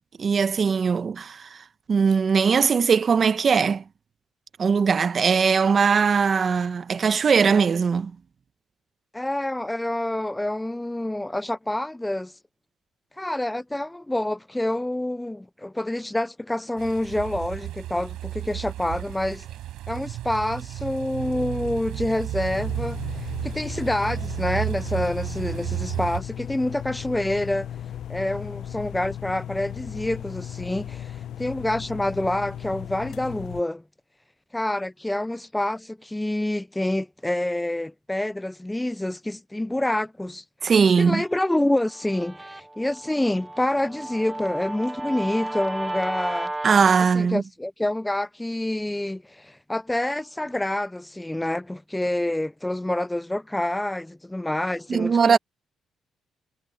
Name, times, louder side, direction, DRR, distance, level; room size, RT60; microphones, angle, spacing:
voice 1, 0.2-1.6 1.9-3.8 4.6-8.1 40.6-41.2 46.6-47.4 54.9-55.4, right 6 dB, 45° right, 1.0 m, -20 dB
voice 2, 9.1-12.3 13.2-19.5 19.9-27.7 28.1-33.8 34.5-40.4 41.0-46.5 47.1-55.4, left 1 dB, 10° left, 0.4 m, -27 dB
sound 1, 16.8-26.2, right 14 dB, 90° right, 4.5 m, -33 dB
sound 2, 22.5-33.6, left 10 dB, 70° left, 0.6 m, -36 dB
Guitar, 41.4-46.9, right 2 dB, 15° right, 1.6 m, -34 dB
cardioid pair, 90°, 0 cm